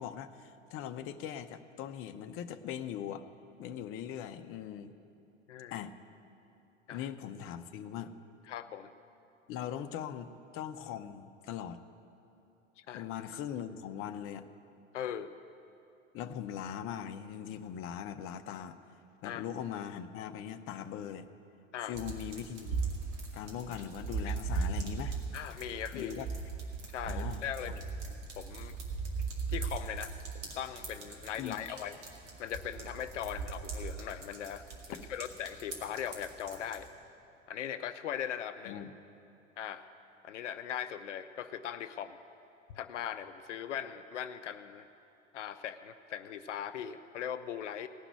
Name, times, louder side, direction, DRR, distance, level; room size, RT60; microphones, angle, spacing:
voice 1, 0.0-3.2 3.6-4.9 5.7-5.9 6.9-8.2 9.5-11.8 12.9-14.5 16.1-18.8 19.2-21.3 21.9-22.8 23.3-25.2 25.9-26.3 27.1-27.8 31.4-31.6 38.7-38.9, left 9 dB, 35° left, 8 dB, 0.6 m, -40 dB
voice 2, 8.5-8.9 12.8-13.1 14.9-15.3 19.2-19.4 21.7-21.9 24.3-24.4 25.3-26.1 26.9-28.8 29.5-30.1 30.5-32.0 32.4-34.6 34.9-36.9 37.5-38.8 39.6-39.9 40.2-42.2 42.7-44.9 45.3-47.9, left 9 dB, 70° left, 11 dB, 0.6 m, -39 dB
sound 1, 21.9-36.9, right 4 dB, 65° right, 2.2 m, -39 dB
17.5 x 5.9 x 9.4 m, 2.9 s
figure-of-eight pair, 80°, 38 cm